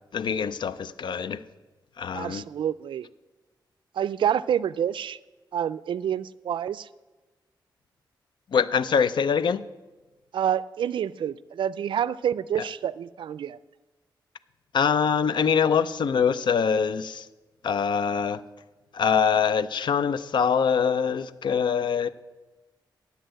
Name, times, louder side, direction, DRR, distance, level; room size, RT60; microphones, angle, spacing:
voice 1, 0.1-1.4 2.0-2.4 8.5-9.6 12.6-12.7 14.7-17.3 17.6-18.4 18.9-22.1, left 6 dB, 70° left, 0.5 m, -24 dB
voice 2, 2.1-3.1 4.0-5.2 5.5-6.9 10.3-13.6, right 9 dB, 80° right, 0.4 m, -28 dB
10.0 x 8.0 x 7.7 m
cardioid pair, 90°, 8 cm